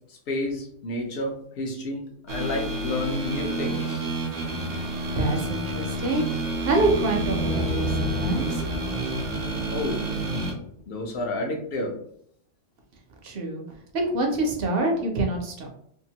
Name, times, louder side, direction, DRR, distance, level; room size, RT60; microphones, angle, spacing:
voice 1, 0.1-4.1 9.7-10.0 10.9-11.9, left 2 dB, 55° left, 2 dB, 0.8 m, -30 dB
sound 1, 2.3-10.5, right 2 dB, 85° right, 1.1 m, -30 dB
voice 2, 5.2-6.2 6.6-8.6 13.2-13.6 13.9-15.7, right 2 dB, 60° right, 2 dB, 0.8 m, -26 dB
sound 2, 6.3-10.6, equal, 85° left, 1.0 m, -32 dB
2.8 x 2.4 x 2.8 m, 0.65 s
omnidirectional pair, 1.3 m